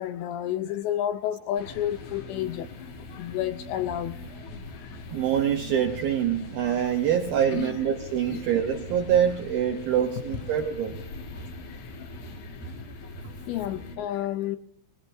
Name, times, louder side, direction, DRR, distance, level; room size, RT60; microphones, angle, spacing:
voice 1, 0.0-2.7 3.1-4.2 6.8-6.9 7.5-7.8 8.3-8.4 13.5-14.6, left 11 dB, 80° left, 2.6 m, -30 dB
sound 1, 1.5-14.0, left 2 dB, 55° left, 2.6 m, -41 dB
voice 2, 5.1-11.0, right 9 dB, 80° right, 2.2 m, -25 dB
23.0 x 19.5 x 2.6 m
omnidirectional pair, 5.7 m